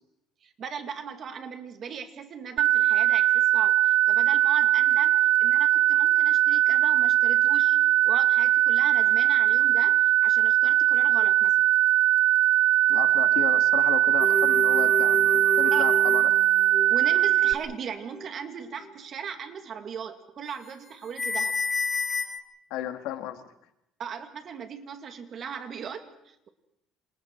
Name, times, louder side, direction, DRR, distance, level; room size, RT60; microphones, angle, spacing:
voice 1, 0.4-7.8 8.0-11.7 15.7-15.8 16.9-21.6 24.0-26.5, right 7 dB, 40° right, 8 dB, 2.3 m, -38 dB
sound 1, 2.6-17.5, right 14 dB, 70° right, 1.0 m, -21 dB
voice 2, 12.9-16.3 22.7-23.4, left 12 dB, 90° left, 8 dB, 2.2 m, -34 dB
sound 2, 14.2-17.0 17.3-17.6 18.1-18.3 18.8-18.9 20.7-20.9 21.2-22.4, left 3 dB, 20° left, 2.4 m, -30 dB
28.5 x 27.0 x 4.7 m, 0.80 s
cardioid pair, 150°, 0 cm